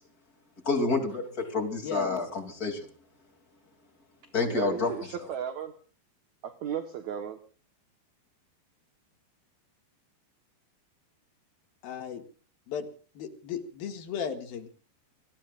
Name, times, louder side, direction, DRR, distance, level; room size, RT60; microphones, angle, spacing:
voice 1, 0.6-2.8 4.3-4.9, left 3 dB, 25° left, 4 dB, 2.7 m, -28 dB
voice 2, 1.8-2.2 11.8-12.2 12.7-12.9 13.2-14.7, left 7 dB, 65° left, 5 dB, 3.5 m, -35 dB
voice 3, 4.5-5.8 6.4-7.4, right 9 dB, 65° right, 7 dB, 2.0 m, -35 dB
29.5 x 20.0 x 2.5 m, 0.40 s
omnidirectional pair, 4.8 m